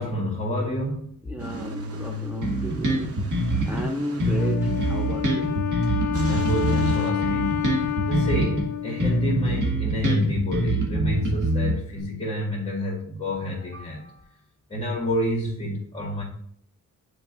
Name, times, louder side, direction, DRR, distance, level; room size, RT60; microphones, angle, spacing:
voice 1, 0.0-1.1 6.3-7.6 8.1-14.1 14.7-16.2, equal, 15° left, -5 dB, 1.8 m, -28 dB
voice 2, 1.2-3.1 3.7-5.5, equal, 5° right, 0 dB, 0.5 m, -34 dB
Car / Engine starting / Idling, 1.4-7.1, equal, 45° right, 0.8 m, -37 dB
Bass guitar, 2.4-3.9 4.2-8.7 9.0-12.0, right 1 dB, 65° right, 1.8 m, -25 dB
Wind instrument woodwind instrument, 4.4-9.8, left 12 dB, 65° left, 0.5 m, -29 dB
10.0 x 4.7 x 2.5 m, 0.68 s
wide cardioid pair, 120°, 32 cm